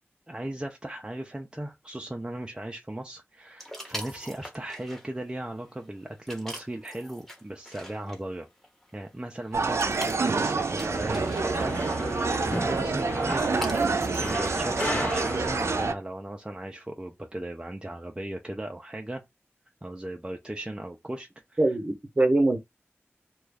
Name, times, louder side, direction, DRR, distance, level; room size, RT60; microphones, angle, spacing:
voice 1, 0.3-8.5 8.9-13.7 14.1-19.2 19.8-21.6, right 1 dB, 20° right, 0.5 m, -37 dB
sound 1, 3.6-15.2, equal, 5° left, 1.1 m, -45 dB
sound 2, 9.5-15.9, right 4 dB, 80° right, 0.4 m, -27 dB
sound 3, 10.9-15.9, left 1 dB, 40° left, 1.2 m, -34 dB
voice 2, 21.6-22.6, right 2 dB, 40° right, 0.9 m, -23 dB
3.0 x 2.3 x 3.4 m
wide cardioid pair, 70°, 5 cm